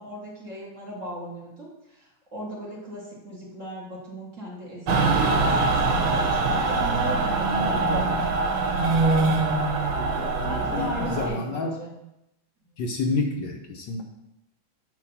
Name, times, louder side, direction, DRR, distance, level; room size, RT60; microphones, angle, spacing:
voice 1, 0.0-8.3 10.4-11.9, equal, 40° right, -4 dB, 1.6 m, -38 dB
Mechanical fan, 4.9-11.3, right 3 dB, 90° right, 1.7 m, -23 dB
voice 2, 7.5-8.1 10.0-11.8 12.8-14.0, left 3 dB, 65° left, 2 dB, 1.3 m, -30 dB
8.0 x 2.8 x 5.4 m, 0.88 s
omnidirectional pair, 2.2 m